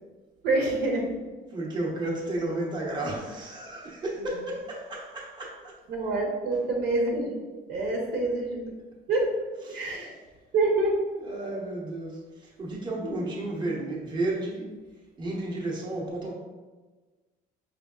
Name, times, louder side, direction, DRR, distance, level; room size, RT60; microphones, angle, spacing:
voice 1, 0.4-1.1 5.9-7.3 7.7-8.7 9.1-9.3 9.7-10.1 10.5-10.9 13.0-13.2, right 2 dB, 75° right, -1 dB, 1.0 m, -26 dB
voice 2, 1.5-5.8 9.7-10.1 11.1-14.7 15.2-16.3, right 2 dB, 25° right, -3 dB, 0.9 m, -33 dB
5.0 x 3.4 x 2.4 m, 1.3 s
cardioid pair, 110°, 17 cm